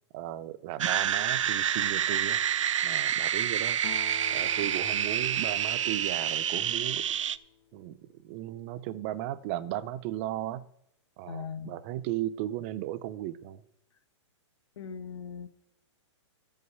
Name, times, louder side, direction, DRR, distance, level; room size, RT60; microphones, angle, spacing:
voice 1, 0.1-2.4 2.8-3.8 4.3-7.1 7.7-10.7 11.2-13.6, right 13 dB, 25° right, 0.4 m, -36 dB
sound 1, 0.8-7.4, right 9 dB, 85° right, 0.5 m, -28 dB
Acoustic guitar, 3.8-7.6, left 11 dB, 25° left, 0.7 m, -47 dB
voice 2, 11.3-11.8 14.8-15.5, left 6 dB, 70° left, 1.1 m, -39 dB
13.0 x 5.5 x 7.8 m
hypercardioid pair, 160°, 16 cm